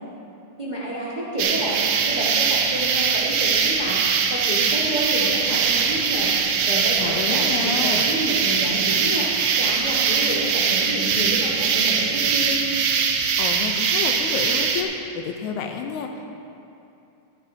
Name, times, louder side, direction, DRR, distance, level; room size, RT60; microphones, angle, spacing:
voice 1, 0.6-12.6, right 1 dB, 30° right, -7 dB, 0.8 m, -29 dB
sound 1, 1.4-14.8, right 6 dB, 90° right, 1.3 m, -22 dB
voice 2, 7.0-8.1 13.4-16.3, left 6 dB, 75° left, 4 dB, 1.9 m, -30 dB
14.0 x 12.5 x 2.7 m, 2.7 s
omnidirectional pair, 3.6 m